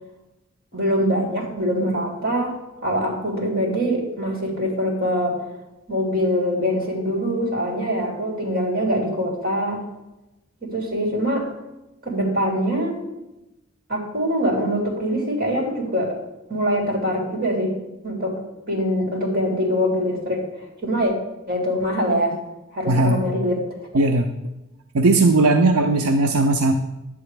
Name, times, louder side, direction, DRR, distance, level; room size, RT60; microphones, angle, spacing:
voice 1, 0.7-2.5 2.8-5.4 5.9-9.8 10.6-11.5 12.0-13.0 13.9-16.1 16.5-17.7 18.0-18.4 18.7-20.4 20.8-21.1 21.5-22.4 22.7-23.6, equal, 40° right, -2 dB, 3.0 m, -23 dB
voice 2, 22.9-23.2 23.9-24.3 24.9-26.7, right 2 dB, 80° right, 4 dB, 0.6 m, -17 dB
11.0 x 8.7 x 3.3 m, 0.96 s
head